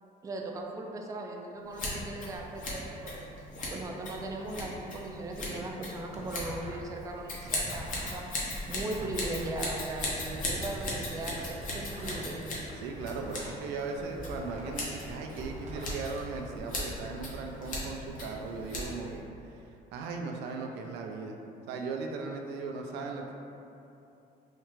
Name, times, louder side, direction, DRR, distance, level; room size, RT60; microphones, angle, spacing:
voice 1, 0.2-3.3 3.7-8.3 8.7-12.6, right 2 dB, 20° right, 0 dB, 0.4 m, -38 dB
Scissors, 1.7-19.2, left 1 dB, 50° left, 0.9 m, -38 dB
sound 1, 6.1-7.0 7.3-10.9 11.3-13.6 13.9-15.9, equal, 40° right, 0.7 m, -45 dB
voice 2, 12.8-19.6 19.9-21.4 21.7-23.3, right 4 dB, 85° right, 2 dB, 0.4 m, -38 dB
4.3 x 2.4 x 3.0 m, 2.7 s
cardioid pair, 110°, 17 cm